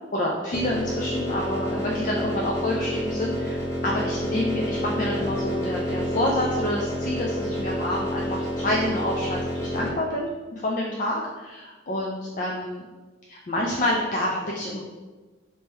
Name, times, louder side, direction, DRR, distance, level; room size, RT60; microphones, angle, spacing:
voice 1, 0.1-12.8 13.3-14.8, left 1 dB, 45° left, -2 dB, 0.4 m, -28 dB
sound 1, 0.5-9.9, equal, 15° left, 0.7 m, -29 dB
3.6 x 2.7 x 4.4 m, 1.3 s
head